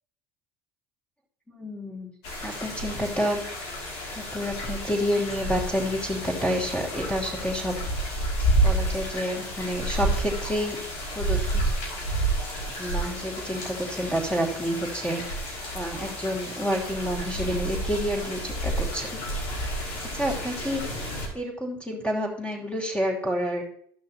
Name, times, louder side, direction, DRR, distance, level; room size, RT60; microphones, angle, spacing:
voice 1, 1.5-2.1 2.4-3.4 4.1-7.8 8.6-10.8 11.1-11.6 12.8-15.4 15.7-19.2 20.1-21.0 21.3-23.6, equal, 10° left, -1 dB, 3.0 m, -29 dB
sound 1, 2.2-21.3, right 1 dB, 75° left, 2.7 m, -30 dB
14.0 x 6.2 x 2.9 m, 0.63 s
hypercardioid pair, 70°, 13 cm